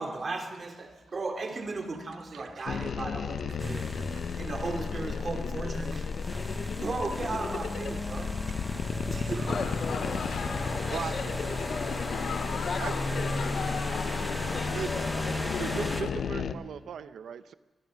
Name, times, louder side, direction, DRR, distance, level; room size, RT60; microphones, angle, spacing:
voice 1, 0.0-3.9 4.4-6.2 6.7-8.4 9.1-9.7, right 3 dB, 35° right, 4 dB, 2.5 m, -36 dB
voice 2, 2.3-2.7 3.6-4.4 9.2-9.4 10.9-11.3 12.8-12.9 14.7-15.1 15.6-17.5, right 7 dB, 90° right, 13 dB, 0.7 m, -39 dB
sound 1, 2.7-16.5, left 6 dB, 65° left, 0.8 m, -34 dB
sound 2, 3.6-16.0, equal, ahead, 0.9 m, -36 dB
sound 3, 9.5-16.1, left 6 dB, 85° left, 2.0 m, -37 dB
voice 3, 9.5-12.2 12.5-14.0 14.5-15.3, left 4 dB, 45° left, 6 dB, 1.9 m, -40 dB
24.0 x 22.5 x 6.3 m, 1.3 s
wide cardioid pair, 145°, 0 cm